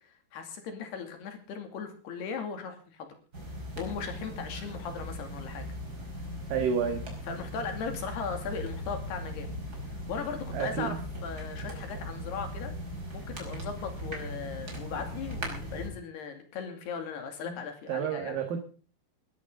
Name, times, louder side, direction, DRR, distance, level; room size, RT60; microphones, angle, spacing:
voice 1, 0.3-3.2 3.8-5.7 7.3-9.5 9.9-12.7 13.1-18.3, left 6 dB, 70° left, 6 dB, 4.5 m, -38 dB
sound 1, 3.3-15.9, equal, 20° right, 5.3 m, -39 dB
voice 2, 6.5-7.1 10.5-11.0 17.5-17.6 17.9-18.6, right 7 dB, 60° right, 6 dB, 2.9 m, -30 dB
20.5 x 13.5 x 3.9 m, 0.40 s
omnidirectional pair, 5.0 m